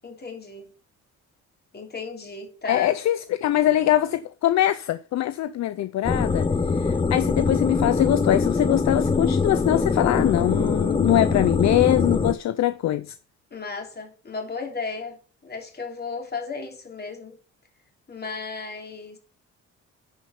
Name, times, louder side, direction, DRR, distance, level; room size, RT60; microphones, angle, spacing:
voice 1, 0.0-0.7 1.7-2.9 13.5-17.4 18.1-19.2, left 4 dB, 35° left, 3.2 m, -35 dB
voice 2, 2.7-6.5 6.7-13.1, left 13 dB, 65° left, 0.6 m, -23 dB
sound 1, 6.0-12.3, left 4 dB, 15° left, 0.6 m, -23 dB
9.9 x 4.9 x 5.8 m
cardioid pair, 90°, 30 cm